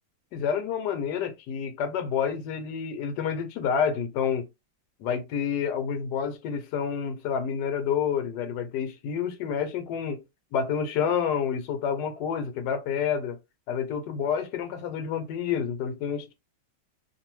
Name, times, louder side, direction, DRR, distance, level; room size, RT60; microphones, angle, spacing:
voice 1, 0.3-4.4 5.0-10.2 10.5-13.4 13.7-16.3, left 7 dB, 75° left, 1.2 m, -29 dB
2.7 x 2.5 x 3.0 m
omnidirectional pair, 1.9 m